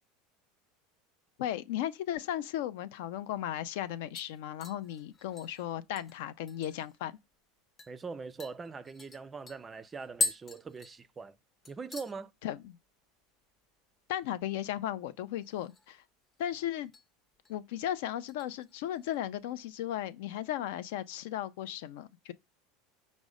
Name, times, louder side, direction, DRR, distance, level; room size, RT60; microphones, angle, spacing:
voice 1, 1.4-7.2 12.4-12.8 14.1-16.0 16.4-16.9 17.5-22.3, left 12 dB, 75° left, 0.4 m, -36 dB
sound 1, 4.2-7.0 7.3-7.4 7.8-7.9 8.4-11.4 11.6-12.2 12.5-12.9 13.2-13.3 15.4-16.0 16.3-17.0 17.4-17.7 18.3-19.2 19.5-19.6, left 3 dB, 25° left, 0.6 m, -40 dB
voice 2, 7.9-11.4 11.7-12.3, right 4 dB, 20° right, 0.3 m, -42 dB
5.2 x 2.1 x 4.8 m
supercardioid pair, 125°, 0 cm